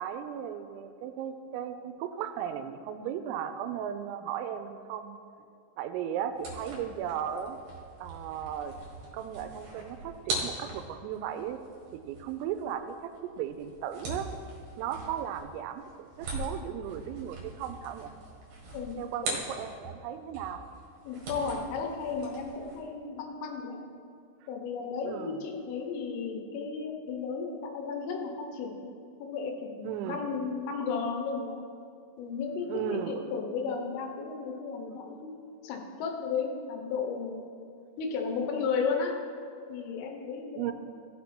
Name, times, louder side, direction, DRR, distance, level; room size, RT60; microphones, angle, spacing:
voice 1, 0.0-5.2 5.8-7.6 8.0-8.7 9.1-11.6 11.9-14.3 14.8-18.1 19.0-20.6 25.0-25.4 29.8-30.2 32.7-33.2 40.6-40.7, right 9 dB, 85° right, 9 dB, 3.2 m, -36 dB
sound 1, 6.3-20.0 20.3-22.8, right 2 dB, 55° right, 2.5 m, -41 dB
voice 2, 21.1-23.8 24.5-28.7 29.2-31.6 32.2-35.3 35.6-37.4 38.0-39.1 39.7-40.7, left 5 dB, 80° left, 3 dB, 3.5 m, -34 dB
15.5 x 6.3 x 4.3 m, 2.4 s
omnidirectional pair, 5.9 m